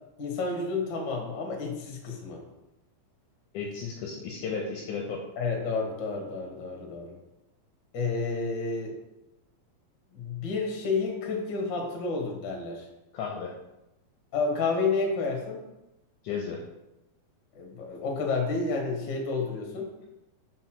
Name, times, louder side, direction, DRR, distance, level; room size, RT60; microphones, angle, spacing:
voice 1, 0.2-2.4 5.4-7.2 7.9-8.9 10.1-12.8 14.3-15.6 17.5-19.9, left 4 dB, 55° left, 1 dB, 1.3 m, -30 dB
voice 2, 3.5-5.2 13.1-13.5 16.2-16.6, left 5 dB, 75° left, 0 dB, 1.9 m, -34 dB
5.2 x 4.4 x 6.1 m, 0.94 s
omnidirectional pair, 4.3 m